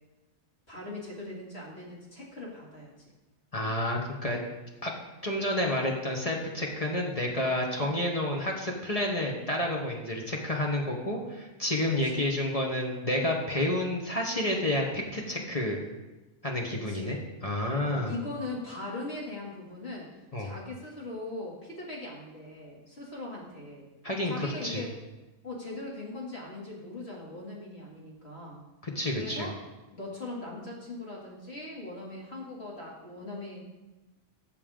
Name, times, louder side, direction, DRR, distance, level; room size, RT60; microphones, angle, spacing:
voice 1, 0.7-2.9 7.8-8.0 12.1-12.2 16.7-17.1 17.8-20.1 20.4-23.9 24.2-24.9 25.4-28.6 29.1-29.6 29.9-33.6, left 2 dB, 50° left, -4 dB, 3.1 m, -40 dB
voice 2, 3.5-4.4 4.8-4.9 5.2-15.8 16.4-18.2 20.3-20.5 24.0-24.8 28.8-29.5, left 1 dB, 25° left, -1 dB, 1.3 m, -30 dB
15.5 x 6.9 x 3.8 m, 1.1 s
omnidirectional pair, 1.4 m